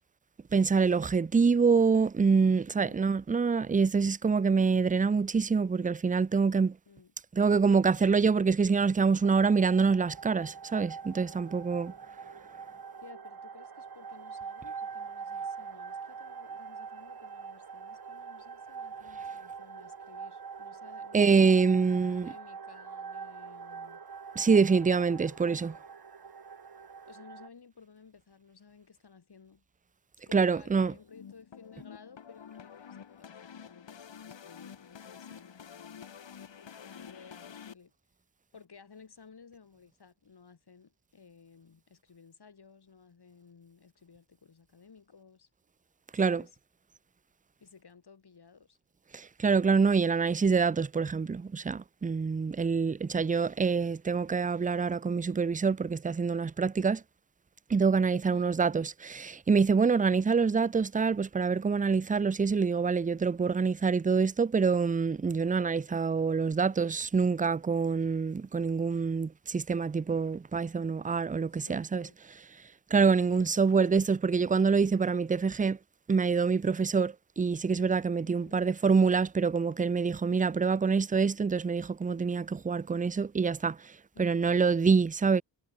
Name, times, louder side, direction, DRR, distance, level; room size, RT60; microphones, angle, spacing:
voice 1, 0.5-6.8 7.3-11.9 21.1-22.3 24.4-25.8 30.3-30.9 46.1-46.4 49.1-57.0 57.7-72.1 72.9-75.8 76.1-83.8 84.2-85.4, right 5 dB, 20° right, 0.4 m, -26 dB
voice 2, 2.8-3.2 6.9-7.1 13.0-21.6 21.9-24.0 27.1-29.6 30.3-36.0 36.6-37.9 38.5-45.5 46.1-46.6 47.6-48.8 58.3-58.5 71.5-72.2 73.1-73.5 78.3-78.7 84.1-84.6, left 5 dB, 60° left, 7.8 m, -56 dB
sound 1, 9.2-27.5, right 6 dB, 55° right, 3.3 m, -44 dB
sound 2, 30.9-37.7, left 7 dB, 75° left, 2.5 m, -49 dB
wide cardioid pair, 105°, 44 cm